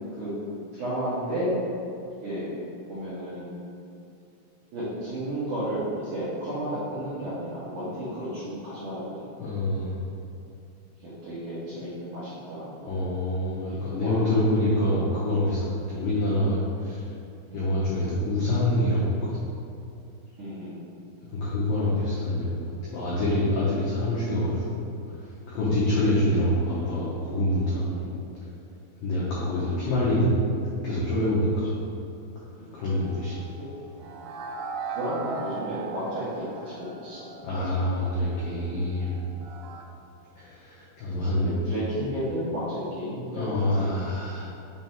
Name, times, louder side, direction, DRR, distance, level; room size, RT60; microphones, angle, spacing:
voice 1, 0.7-1.6 2.2-2.5 2.9-3.6 4.7-9.2 11.0-12.7 13.7-14.3 14.9-15.0 15.9-16.1 17.5-17.7 20.4-20.8 25.7-25.9 28.0-28.2 29.0-29.3 32.6-32.7 34.1-34.2 34.9-37.3 37.6-37.8 41.4-43.4, equal, 70° right, -13 dB, 1.9 m, -33 dB
voice 2, 9.4-9.9 12.8-17.1 17.5-19.3 21.3-24.8 25.1-28.0 29.0-30.4 30.8-31.7 32.7-33.4 37.4-39.2 40.4-41.6 43.3-44.5, left 1 dB, 80° left, -9 dB, 1.9 m, -26 dB
sound 1, 32.8-39.8, right 5 dB, 85° right, 2.4 m, -40 dB
6.7 x 3.5 x 4.4 m, 2.6 s
omnidirectional pair, 5.5 m